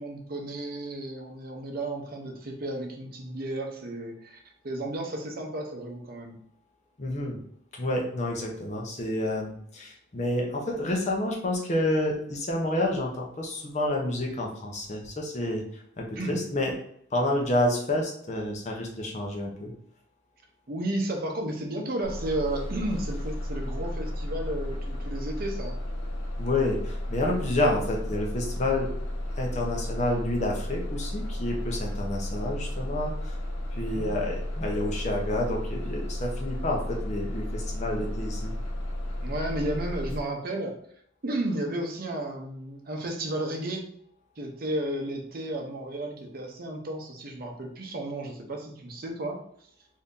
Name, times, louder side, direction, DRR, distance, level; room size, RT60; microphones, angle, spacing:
voice 1, 0.0-6.4 16.2-16.4 20.7-25.8 33.8-34.1 39.2-40.7 41.2-43.8 44.4-49.4, right 1 dB, 50° right, 2 dB, 0.7 m, -33 dB
voice 2, 7.0-7.4 7.7-16.7 17.1-19.7 26.4-28.9 29.4-33.4 33.7-38.5, left 1 dB, 35° left, 0 dB, 0.7 m, -29 dB
Bus, 22.0-40.2, left 1 dB, 85° left, 0.7 m, -33 dB
2.7 x 2.7 x 3.6 m, 0.67 s
head